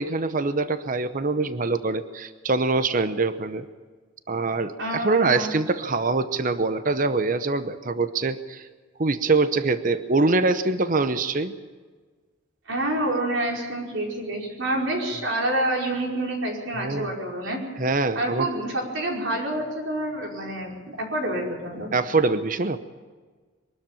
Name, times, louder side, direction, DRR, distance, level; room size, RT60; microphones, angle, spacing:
voice 1, 0.0-3.7 4.3-8.7 9.0-11.5 16.8-17.1 17.8-18.5 21.9-22.8, right 3 dB, 40° right, 11 dB, 0.8 m, -24 dB
voice 2, 4.8-5.5 12.7-17.6 18.2-21.9, right 1 dB, 80° right, -1 dB, 5.2 m, -28 dB
23.5 x 13.0 x 9.0 m, 1.4 s
head